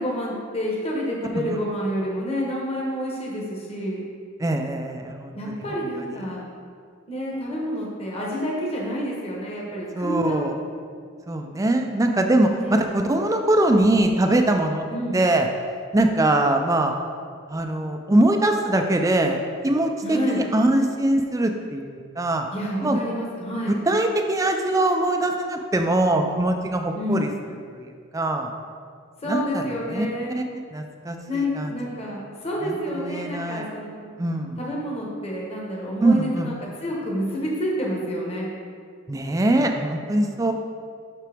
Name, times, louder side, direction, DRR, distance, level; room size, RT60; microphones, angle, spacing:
voice 1, 0.0-4.0 5.4-6.4 7.1-10.4 12.6-12.8 14.9-15.2 20.0-20.4 22.5-23.7 26.9-27.2 29.2-30.4 31.3-34.1 34.6-36.6 36.8-38.5, equal, 30° left, -4 dB, 1.2 m, -28 dB
voice 2, 4.4-5.3 5.7-5.8 9.9-10.6 11.3-14.8 15.1-15.5 15.9-16.9 17.5-19.4 19.6-22.5 22.8-23.0 23.9-27.3 28.1-28.5 29.3-29.6 29.9-30.1 30.3-30.4 30.7-31.7 32.6-33.7 34.2-34.6 36.0-36.5 39.1-40.5, right 1 dB, 15° right, 4 dB, 0.3 m, -22 dB
7.4 x 5.9 x 3.4 m, 2.1 s
head